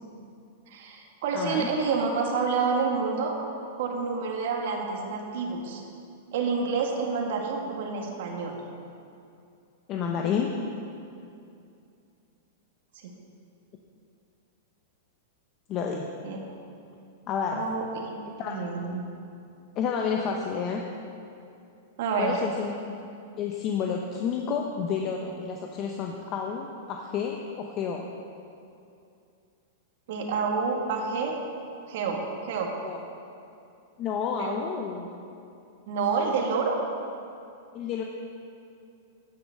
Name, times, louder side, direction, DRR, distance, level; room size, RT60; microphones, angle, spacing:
voice 1, 0.7-3.3 3.8-5.8 6.3-8.5 13.0-13.1 16.2-16.4 17.5-18.2 18.5-19.1 22.0-22.4 30.1-31.4 31.9-32.7 34.4-34.6 35.9-36.8, right 5 dB, 60° right, 0 dB, 1.9 m, -28 dB
voice 2, 1.3-1.7 9.9-10.5 15.7-16.1 17.3-17.7 18.2-18.6 19.8-20.8 22.2-22.7 23.4-28.0 32.8-33.0 34.0-35.1 37.7-38.0, left 6 dB, 30° left, 1 dB, 0.7 m, -30 dB
9.8 x 7.2 x 6.5 m, 2.6 s
supercardioid pair, 145°, 0 cm